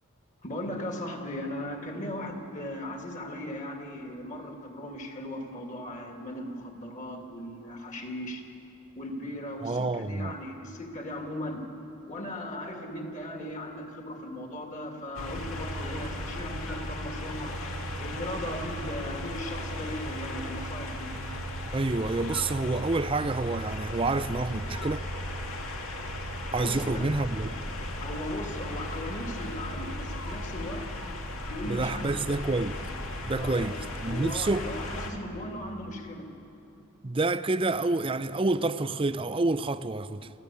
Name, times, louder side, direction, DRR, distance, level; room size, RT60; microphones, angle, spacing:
voice 1, 0.4-8.5 8.9-11.7 12.1-17.5 18.0-21.1 26.6-27.1 28.0-30.9 31.5-32.5 33.4-33.8 34.1-36.3, left 1 dB, 35° left, 2.4 m, -38 dB
voice 2, 9.6-10.4 21.7-25.0 26.5-27.6 31.7-32.8 33.3-34.7 37.0-40.3, right 2 dB, 25° right, 0.5 m, -28 dB
sound 1, 15.1-35.1, left 1 dB, 70° left, 2.2 m, -36 dB
25.5 x 15.0 x 8.4 m
head